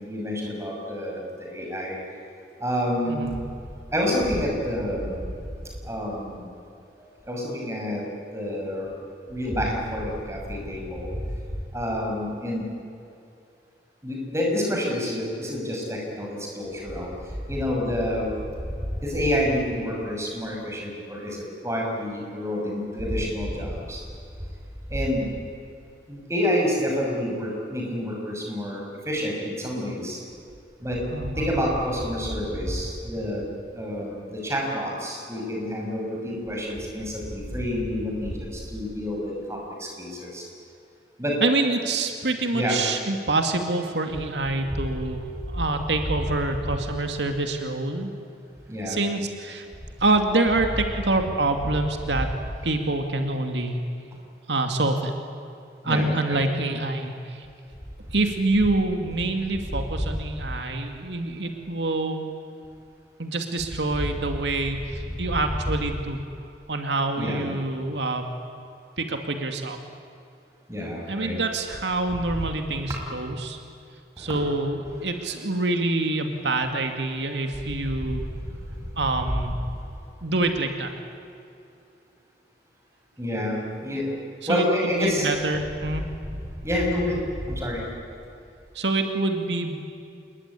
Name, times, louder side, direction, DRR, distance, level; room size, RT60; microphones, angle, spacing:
voice 1, 0.0-2.0 2.6-3.3 3.9-5.3 5.9-6.4 7.3-8.0 8.3-8.9 9.3-11.1 11.7-12.6 14.0-17.1 17.5-18.3 19.0-21.3 21.6-24.0 24.9-25.3 26.1-30.2 30.8-31.0 31.4-33.4 33.7-38.3 38.7-40.4 41.2-41.4 42.5-42.8 48.7-49.0 55.8-56.4 67.2-67.5 70.7-71.4 72.9-73.0 74.3-74.5 83.2-84.1 84.5-85.3 86.6-87.2 87.5-87.8, equal, 15° right, -1 dB, 6.7 m, -28 dB
voice 2, 3.1-3.4 31.1-31.6 41.4-48.1 48.9-49.7 50.0-52.3 52.6-53.8 54.5-55.1 55.8-57.5 58.1-62.2 63.2-66.2 66.7-68.2 69.0-69.8 71.1-73.6 74.2-78.2 79.0-79.5 80.2-80.9 84.5-84.7 84.9-86.0 88.7-89.8, right 2 dB, 85° right, 5 dB, 2.3 m, -26 dB
27.0 x 21.5 x 10.0 m, 2.6 s
head